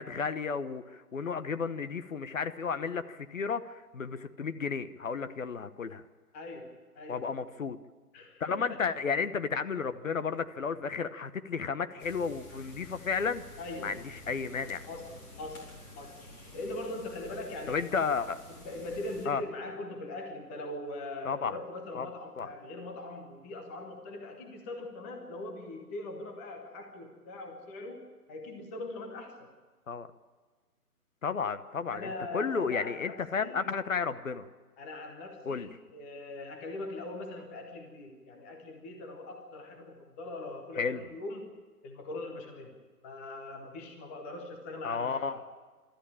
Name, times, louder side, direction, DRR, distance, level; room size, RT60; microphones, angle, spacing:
voice 1, 0.0-6.0 7.1-7.8 8.4-13.4 13.8-14.9 17.7-18.4 19.3-19.4 21.2-21.6 21.9-22.1 22.4-22.5 29.9-30.1 31.2-34.5 35.5-35.7 40.8-41.0 44.8-45.3, left 5 dB, 55° left, 12 dB, 1.1 m, -33 dB
voice 2, 6.3-7.3 8.1-8.8 13.6-14.0 14.9-15.7 16.0-16.2 16.5-17.8 18.5-29.5 31.9-33.6 34.8-41.5 41.8-42.8 43.0-45.4, left 2 dB, 10° left, 3 dB, 0.8 m, -41 dB
sound 1, 12.0-19.3, left 1 dB, 25° left, 4.4 m, -50 dB
24.0 x 13.5 x 8.8 m, 1.4 s
figure-of-eight pair, 145°, 46 cm